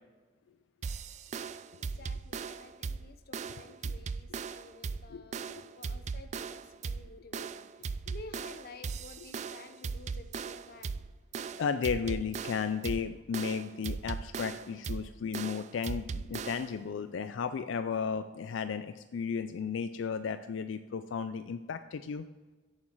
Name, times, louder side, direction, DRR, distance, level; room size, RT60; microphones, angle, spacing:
sound 1, 0.8-16.8, right 5 dB, 40° right, 0.3 m, -39 dB
voice 1, 1.8-10.9 11.5-11.6, left 3 dB, 55° left, 8 dB, 0.8 m, -52 dB
voice 2, 5.1-5.6 9.2-9.3 11.6-22.3, left 6 dB, 80° left, 10 dB, 0.4 m, -34 dB
8.6 x 7.2 x 4.7 m, 1.3 s
head